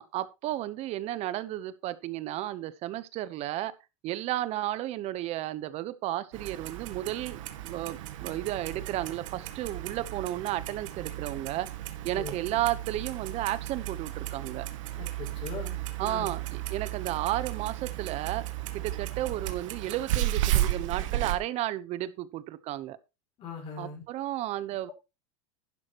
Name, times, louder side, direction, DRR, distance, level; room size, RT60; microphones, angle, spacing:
voice 1, 0.0-3.7 4.0-11.7 12.0-14.7 16.0-18.4 18.7-23.0 23.8-24.9, right 14 dB, 40° right, 1.0 m, -33 dB
Clock, 6.3-21.4, right 14 dB, 80° right, 2.0 m, -34 dB
voice 2, 15.0-16.3 23.4-24.0, left 5 dB, 35° left, 5.6 m, -40 dB
11.5 x 10.5 x 3.1 m
supercardioid pair, 140°, 16 cm